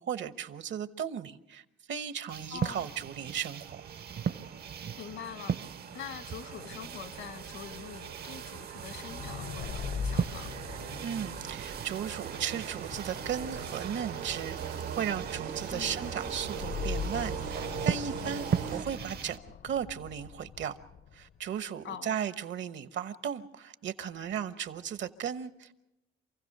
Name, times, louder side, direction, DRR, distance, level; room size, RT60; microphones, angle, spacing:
voice 1, 0.0-3.8 11.0-20.8 21.1-25.8, right 8 dB, 70° right, 13 dB, 1.1 m, -36 dB
sound 1, 2.3-19.4, right 7 dB, 55° right, 0.7 m, -39 dB
voice 2, 2.5-2.9 5.0-10.5 15.7-16.1 21.8-22.2, left 8 dB, 80° left, 11 dB, 1.6 m, -44 dB
sound 2, 2.5-19.3, right 8 dB, 85° right, 1.3 m, -41 dB
sound 3, 8.8-21.4, left 6 dB, 55° left, 0.6 m, -41 dB
27.5 x 16.0 x 6.7 m, 0.90 s
cardioid pair, 90°, 20 cm